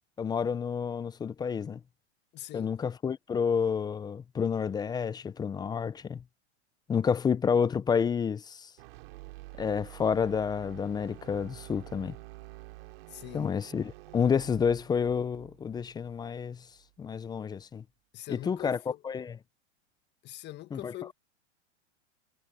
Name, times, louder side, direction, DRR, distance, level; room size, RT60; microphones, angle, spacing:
voice 1, 0.2-1.8 2.5-6.2 6.9-8.7 9.6-12.2 13.3-16.7 17.0-17.8 18.3-18.8 19.0-19.4 20.7-20.9, left 6 dB, 10° left, 0.6 m, -29 dB
voice 2, 2.3-2.8 13.1-13.5 18.1-19.0 20.2-21.1, left 15 dB, 30° left, 1.4 m, -43 dB
sound 1, 8.8-16.9, right 22 dB, 55° right, 3.0 m, -49 dB
hypercardioid pair, 130°, 35 cm